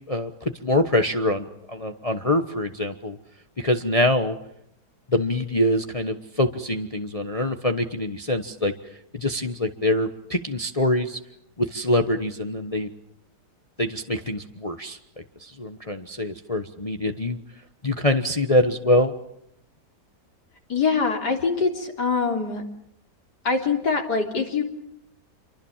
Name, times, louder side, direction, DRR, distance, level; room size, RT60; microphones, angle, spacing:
voice 1, 0.1-3.2 3.6-4.4 5.1-8.7 9.1-11.2 11.6-12.9 13.8-17.4 17.8-19.1, left 1 dB, 25° left, 6 dB, 1.1 m, -24 dB
voice 2, 20.7-22.6 23.4-24.6, left 4 dB, 70° left, 2 dB, 4.1 m, -23 dB
28.0 x 24.0 x 7.3 m, 0.75 s
omnidirectional pair, 1.8 m